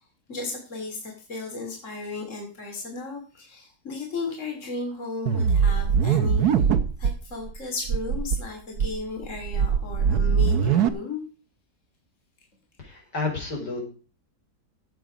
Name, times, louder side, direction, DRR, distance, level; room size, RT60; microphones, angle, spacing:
voice 1, 0.3-6.6 7.0-11.2, left 3 dB, 45° left, 1 dB, 3.3 m, -35 dB
sound 1, 5.3-7.1 7.5-7.6 7.9-8.4 8.8-10.9, right 7 dB, 70° right, 1.5 m, -21 dB
voice 2, 12.8-13.8, left 3 dB, 80° left, 0 dB, 5.7 m, -30 dB
16.0 x 7.8 x 5.1 m, 0.38 s
omnidirectional pair, 1.8 m